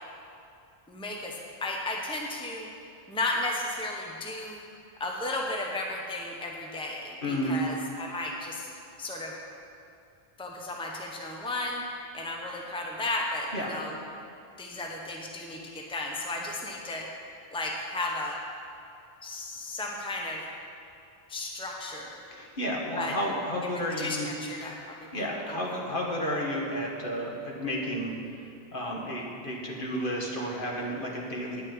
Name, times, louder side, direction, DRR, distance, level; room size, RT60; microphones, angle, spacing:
voice 1, 0.9-2.7 3.1-4.6 5.0-8.7 9.0-9.3 10.4-11.8 12.1-14.0 14.6-17.1 17.5-18.4 19.2-20.4 21.3-22.2 23.0-23.2 24.0-25.8, left 2 dB, 5° left, -1 dB, 1.0 m, -34 dB
voice 2, 7.2-7.6 13.5-13.7 22.3-24.3 25.1-28.2 28.7-31.6, equal, 55° left, -2 dB, 1.8 m, -32 dB
9.9 x 6.4 x 8.7 m, 2.6 s
omnidirectional pair, 1.0 m